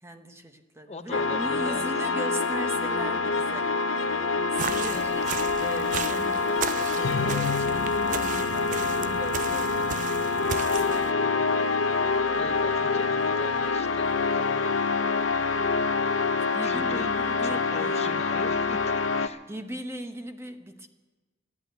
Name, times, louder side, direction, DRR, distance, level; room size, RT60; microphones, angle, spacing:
voice 1, 0.0-3.8 4.5-5.3 5.6-9.9 10.4-11.7 15.3-15.7 16.5-18.2 19.5-20.9, right 1 dB, 15° right, 7 dB, 0.8 m, -39 dB
voice 2, 0.9-1.9 4.9-5.4 12.4-14.7 16.6-17.1 17.4-19.4, left 3 dB, 35° left, 8 dB, 0.7 m, -41 dB
sound 1, 1.1-19.3, left 4 dB, 75° left, 0.6 m, -26 dB
sound 2, 4.6-11.1, right 8 dB, 40° right, 0.4 m, -36 dB
13.0 x 11.0 x 9.1 m, 1.2 s
head